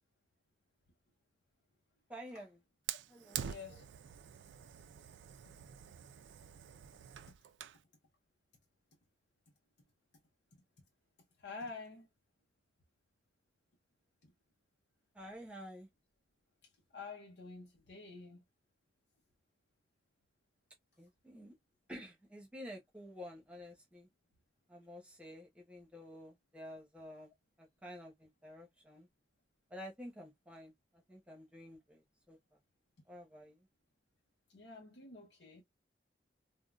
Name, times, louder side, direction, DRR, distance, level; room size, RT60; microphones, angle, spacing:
voice 1, 2.1-2.6 3.1-3.5 15.1-15.9 21.0-21.5 21.9-24.1 24.7-27.3 27.8-29.1 29.7-30.7 31.1-32.0 32.3-32.4 33.1-33.6, equal, 5° right, 0.9 m, -50 dB
Fire, 2.9-7.8, right 9 dB, 85° right, 0.4 m, -46 dB
voice 2, 3.4-3.8 10.5-10.6 11.4-12.1 14.2-14.3 16.9-18.4 34.5-35.6, left 4 dB, 70° left, 0.8 m, -48 dB
3.6 x 2.2 x 2.3 m
head